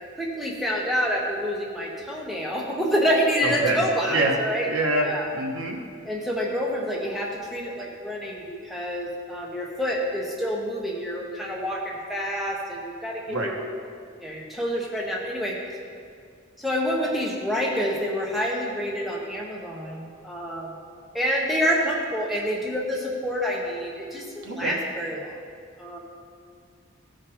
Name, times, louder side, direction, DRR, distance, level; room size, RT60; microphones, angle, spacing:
voice 1, 0.2-4.7 5.0-5.2 6.0-13.6 14.2-15.6 16.6-20.8 21.1-25.4 25.8-26.0, equal, ahead, -3 dB, 1.0 m, -27 dB
voice 2, 3.4-3.8 4.1-4.3 4.7-5.1 5.3-5.8 13.3-13.5 24.4-24.7, right 2 dB, 85° right, 0 dB, 1.4 m, -25 dB
14.5 x 5.1 x 4.3 m, 2.3 s
head